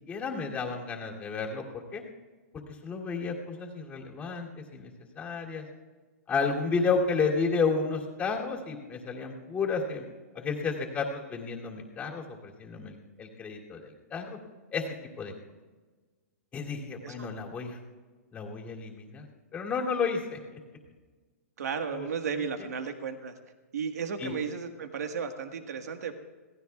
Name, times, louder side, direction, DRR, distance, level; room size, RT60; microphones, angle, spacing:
voice 1, 0.1-2.0 2.8-4.9 5.2-5.6 6.3-10.0 10.3-14.4 14.7-14.8 15.2-15.3 16.5-17.8 18.3-19.3 19.5-20.4 21.9-22.1 24.2-24.3, left 4 dB, 15° left, -2 dB, 2.7 m, -31 dB
voice 2, 21.6-23.3 23.7-26.1, right 6 dB, 80° right, 6 dB, 1.5 m, -34 dB
26.0 x 18.0 x 2.3 m, 1.3 s
hypercardioid pair, 145°, 9 cm